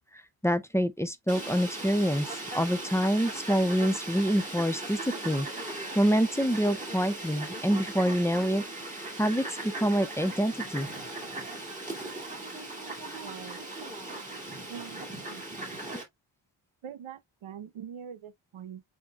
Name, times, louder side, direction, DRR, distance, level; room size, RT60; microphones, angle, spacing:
voice 1, 0.4-8.6 8.9-10.9 15.9-16.0, equal, 5° left, 0.4 m, -27 dB
Fowl, 1.3-16.0, right 2 dB, 15° right, 2.3 m, -38 dB
voice 2, 13.2-13.6 14.6-15.4 16.8-18.8, right 8 dB, 75° right, 0.9 m, -43 dB
7.9 x 2.8 x 2.3 m
wide cardioid pair, 130°, 48 cm